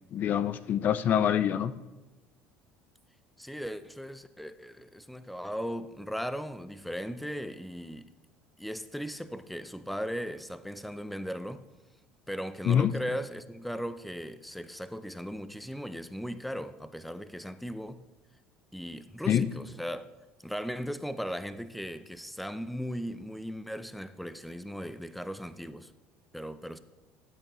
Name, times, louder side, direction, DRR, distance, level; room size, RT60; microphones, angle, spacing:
voice 1, 0.1-1.7 12.7-12.9 19.3-19.5, left 9 dB, 50° left, 0.4 m, -25 dB
voice 2, 3.4-8.1 8.6-11.6 12.3-18.0 18.7-20.1 20.4-25.9 26.3-26.8, equal, ahead, 0.5 m, -37 dB
13.5 x 8.7 x 3.1 m
supercardioid pair, 100°, 4 cm